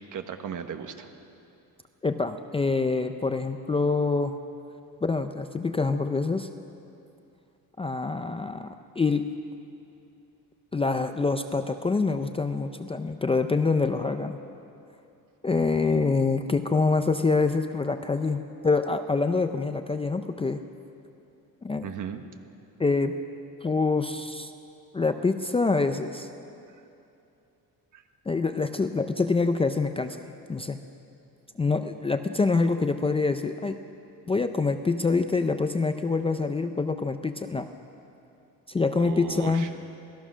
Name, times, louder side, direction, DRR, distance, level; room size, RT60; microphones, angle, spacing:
voice 1, 0.1-1.1 21.8-22.2 27.9-28.0 39.0-39.7, right 8 dB, 50° right, 7 dB, 1.4 m, -36 dB
voice 2, 2.0-4.4 5.0-6.5 7.8-9.3 10.7-14.4 15.4-20.6 21.6-21.8 22.8-23.1 23.6-24.5 24.9-26.3 28.3-30.2 30.5-30.8 31.6-33.8 34.3-37.7 38.7-39.7, left 4 dB, 15° left, 7 dB, 0.5 m, -26 dB
26.5 x 17.5 x 6.3 m, 2.7 s
cardioid pair, 170°, 38 cm